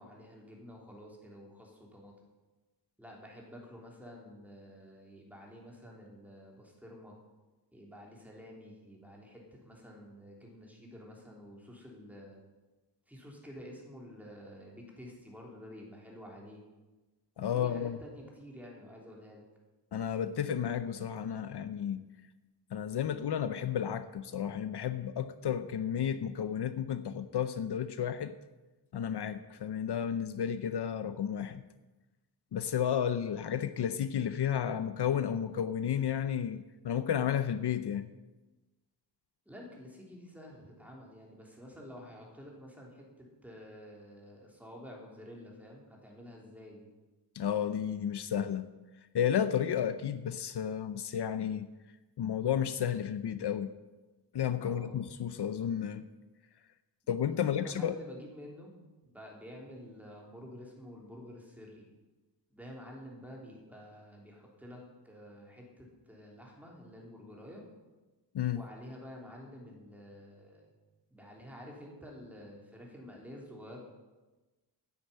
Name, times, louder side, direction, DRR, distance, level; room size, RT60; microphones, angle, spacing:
voice 1, 0.0-2.1 3.0-7.2 7.7-12.4 13.1-16.6 17.3-19.4 39.4-46.9 54.6-55.0 57.3-58.7 59.0-61.9 62.5-67.7 68.5-70.7 71.1-73.8, equal, 5° right, -2 dB, 3.4 m, -50 dB
voice 2, 17.4-18.0 19.9-22.1 22.7-28.3 28.9-31.6 32.5-38.1 47.3-48.7 49.1-51.7 52.2-53.7 54.3-56.0 57.1-57.9 68.3-68.6, left 9 dB, 70° left, 12 dB, 0.7 m, -32 dB
9.8 x 9.7 x 8.7 m, 1.2 s
wide cardioid pair, 125°, 41 cm